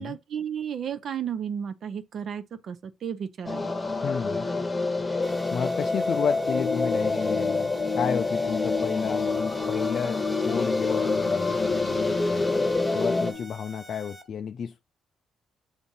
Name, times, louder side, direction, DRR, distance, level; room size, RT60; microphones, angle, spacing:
voice 1, 0.0-3.8, right 8 dB, 60° right, 0.5 m, -33 dB
sound 1, 3.5-13.3, left 3 dB, 15° left, 1.0 m, -27 dB
voice 2, 4.0-4.5 5.5-12.5 12.9-14.8, left 7 dB, 55° left, 0.3 m, -32 dB
sound 2, 5.2-14.2, right 2 dB, 20° right, 1.3 m, -47 dB
sound 3, 6.5-13.5, left 6 dB, 85° left, 0.8 m, -34 dB
7.2 x 2.6 x 5.4 m
cardioid pair, 90°, 0 cm